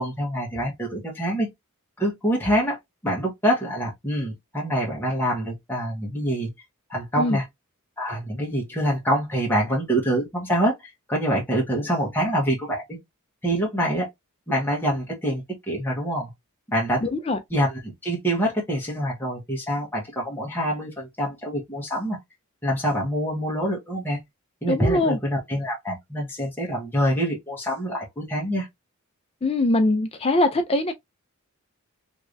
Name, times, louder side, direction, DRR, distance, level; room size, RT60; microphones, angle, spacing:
voice 1, 0.0-1.5 2.0-2.8 3.0-6.5 6.9-7.4 8.0-10.7 11.1-13.0 13.4-14.1 14.5-16.3 16.7-17.1 17.5-22.2 22.6-24.2 24.6-28.7, equal, 10° left, 1.1 m, -25 dB
voice 2, 17.0-17.4 24.7-25.2 29.4-30.9, left 2 dB, 25° left, 0.4 m, -22 dB
3.3 x 3.2 x 2.5 m
head